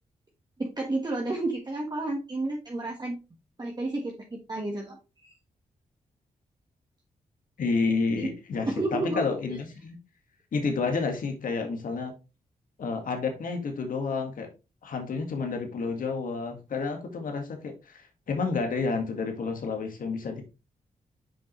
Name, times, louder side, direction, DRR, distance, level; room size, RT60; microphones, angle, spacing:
voice 1, 0.6-3.2 3.6-5.3 8.2-8.3 8.7-9.2 9.5-9.6, right 2 dB, 30° right, -1 dB, 1.6 m, -31 dB
voice 2, 7.6-10.0 10.5-12.1 12.8-14.5 14.8-20.4, left 4 dB, 70° left, 4 dB, 1.9 m, -30 dB
6.9 x 5.1 x 3.2 m, 0.28 s
cardioid pair, 60°, 14 cm